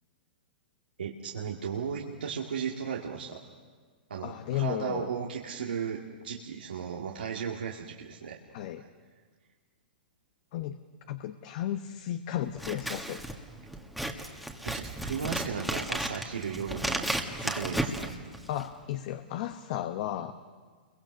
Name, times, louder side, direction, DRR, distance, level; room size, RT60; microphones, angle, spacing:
voice 1, 1.0-3.4 4.1-8.4 8.8-8.9 14.6-17.1 17.4-18.1, right 7 dB, 85° right, -2 dB, 2.0 m, -35 dB
voice 2, 4.2-5.1 8.5-8.9 10.5-10.8 11.1-13.2 18.5-20.3, left 12 dB, 50° left, 8 dB, 1.0 m, -34 dB
Scissors, 12.5-18.8, right 1 dB, ahead, 1.7 m, -34 dB
29.0 x 23.0 x 6.4 m, 1.5 s
hypercardioid pair, 130°, 5 cm